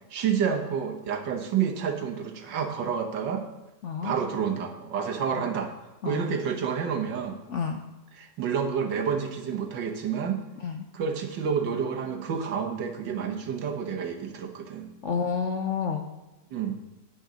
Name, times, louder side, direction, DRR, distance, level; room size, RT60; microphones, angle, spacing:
voice 1, 0.1-3.5 4.0-5.7 6.1-7.4 8.2-10.4 10.9-14.9 16.5-16.8, right 7 dB, 85° right, 3 dB, 1.8 m, -29 dB
voice 2, 3.8-4.1 5.3-5.5 6.0-6.3 7.5-7.8 10.6-10.8 15.0-16.1, left 6 dB, 60° left, 5 dB, 0.8 m, -30 dB
9.7 x 6.5 x 5.0 m, 1.1 s
omnidirectional pair, 1.9 m